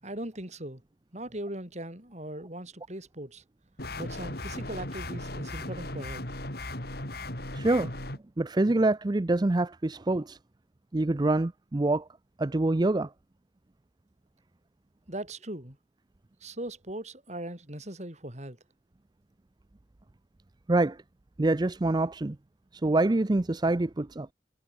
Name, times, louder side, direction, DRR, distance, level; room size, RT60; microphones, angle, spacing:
voice 1, 0.0-0.8 1.1-3.4 4.0-6.2 15.1-15.8 16.4-18.6, right 1 dB, 40° right, 5.8 m, -39 dB
sound 1, 3.8-8.2, left 1 dB, 55° left, 5.0 m, -37 dB
voice 2, 7.5-7.9 8.4-10.4 10.9-12.1 12.4-13.1 20.7-21.0 21.4-22.4 22.7-24.3, right 2 dB, 20° right, 0.5 m, -25 dB
head